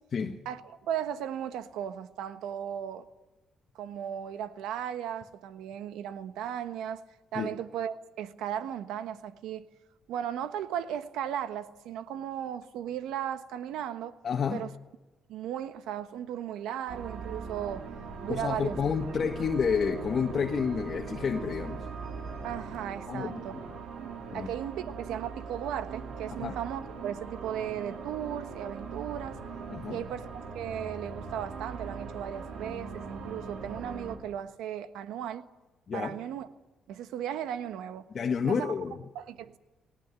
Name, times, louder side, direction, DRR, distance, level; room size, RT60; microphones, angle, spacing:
voice 1, 0.4-3.0 3.7-7.0 7.3-9.7 10.1-14.1 14.5-14.7 15.3-17.8 18.2-18.8 19.2-19.3 22.4-23.5 24.3-29.4 29.9-35.5 35.9-36.5 36.9-38.1 38.4-38.7 39.1-39.6, right 10 dB, 90° right, 1.3 m, -36 dB
voice 2, 14.2-14.6 18.3-21.8 23.1-23.6 24.3-24.5 26.4-26.5 29.7-30.0 35.9-36.1 38.1-39.0, left 6 dB, 50° left, 1.5 m, -30 dB
sound 1, 16.9-34.2, right 5 dB, 75° right, 4.5 m, -40 dB
19.0 x 18.0 x 9.7 m
cardioid pair, 90°, 0 cm